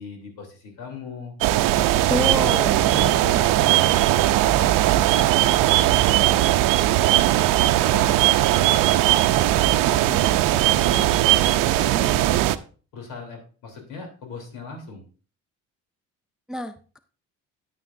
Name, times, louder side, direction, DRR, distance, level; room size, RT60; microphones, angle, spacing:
voice 1, 0.0-1.4 1.7-2.0 2.8-6.5 6.9-8.8 9.3-11.2 11.5-12.3 12.9-15.0, left 4 dB, 75° left, 3 dB, 3.3 m, -39 dB
sound 1, 1.4-12.6, right 15 dB, 80° right, 0.6 m, -19 dB
voice 2, 2.1-2.9 16.5-17.0, equal, ahead, 11 dB, 0.3 m, -28 dB
9.6 x 9.4 x 2.6 m, 0.38 s
cardioid pair, 135°, 32 cm